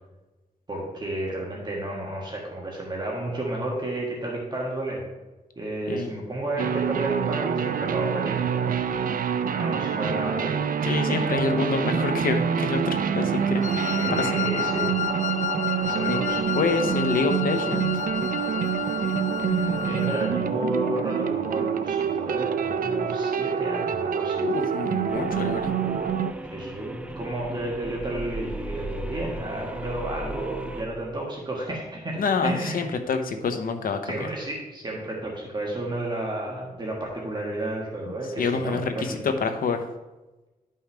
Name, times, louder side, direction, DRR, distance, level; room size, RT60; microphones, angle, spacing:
voice 1, 0.7-5.1 5.5-8.8 9.5-10.7 11.1-11.2 13.3-13.5 14.0-14.9 15.8-16.4 19.5-24.4 26.5-32.9 34.0-39.2, right 1 dB, 30° right, -3 dB, 1.6 m, -31 dB
sound 1, 6.6-26.3, right 7 dB, 75° right, 0.5 m, -26 dB
voice 2, 10.8-13.6 14.1-14.3 16.0-16.2 16.5-17.9 24.4-25.7 32.2-34.3 38.4-39.8, left 4 dB, 80° left, 7 dB, 0.9 m, -27 dB
Wind instrument woodwind instrument, 13.6-20.4, left 9 dB, 60° left, 0.5 m, -31 dB
sound 2, 25.1-30.8, right 1 dB, 10° right, 0.5 m, -37 dB
11.5 x 5.5 x 3.4 m, 1.1 s
wide cardioid pair, 160°, 14 cm